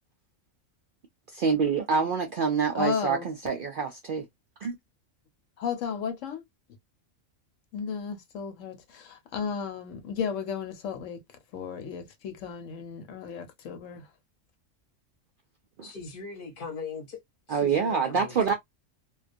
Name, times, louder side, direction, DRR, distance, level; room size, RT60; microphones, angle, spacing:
voice 1, 1.3-4.3 4.6-4.8 15.8-15.9 17.5-18.5, right 5 dB, 65° right, 0.5 m, -26 dB
voice 2, 2.7-3.3 5.6-6.4 7.7-11.2 11.5-14.1, left 6 dB, 75° left, 1.0 m, -34 dB
voice 3, 15.8-17.2 17.5-18.4, left 4 dB, 50° left, 0.8 m, -39 dB
2.2 x 2.2 x 2.4 m
omnidirectional pair, 1.4 m